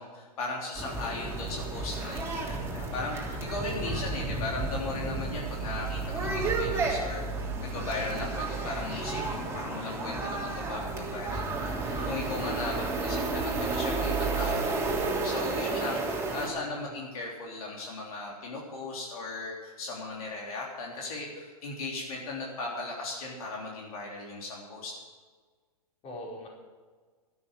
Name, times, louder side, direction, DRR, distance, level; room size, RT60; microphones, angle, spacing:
voice 1, 0.0-7.2 7.6-24.9, left 3 dB, 65° left, -2 dB, 3.4 m, -37 dB
sound 1, 0.7-16.5, right 3 dB, 15° right, 3.2 m, -32 dB
voice 2, 11.7-12.1 16.0-17.0 26.0-26.5, left 1 dB, 30° left, -2 dB, 5.0 m, -44 dB
12.5 x 12.5 x 6.5 m, 1.5 s
hypercardioid pair, 115°, 20 cm